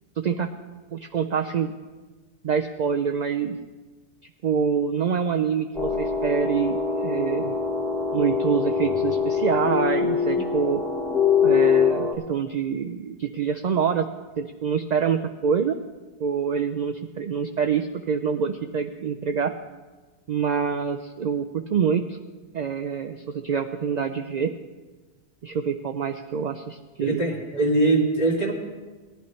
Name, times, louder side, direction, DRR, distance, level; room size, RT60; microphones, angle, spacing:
voice 1, 0.2-0.5 0.9-1.7 2.4-3.6 4.4-7.5 8.1-10.8 11.4-14.1 14.4-15.8 16.2-19.5 20.3-22.2 22.5-24.5 25.4-27.2, right 6 dB, 55° right, 6 dB, 0.5 m, -26 dB
sound 1, 5.7-12.1, left 6 dB, ahead, 1.1 m, -23 dB
voice 2, 27.0-28.5, right 2 dB, 35° left, -2 dB, 2.0 m, -22 dB
18.0 x 11.5 x 3.2 m, 1.3 s
omnidirectional pair, 1.2 m